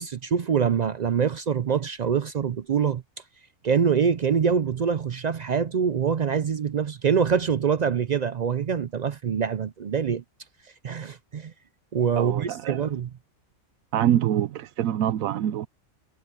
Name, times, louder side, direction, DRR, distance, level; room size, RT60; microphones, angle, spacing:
voice 1, 0.0-3.0 3.6-10.2 10.8-11.5 11.9-13.1, right 7 dB, 70° right, 0.4 m, -24 dB
voice 2, 12.2-12.9 13.9-15.7, right 11 dB, 85° right, 1.1 m, -25 dB
omnidirectional pair, 1.4 m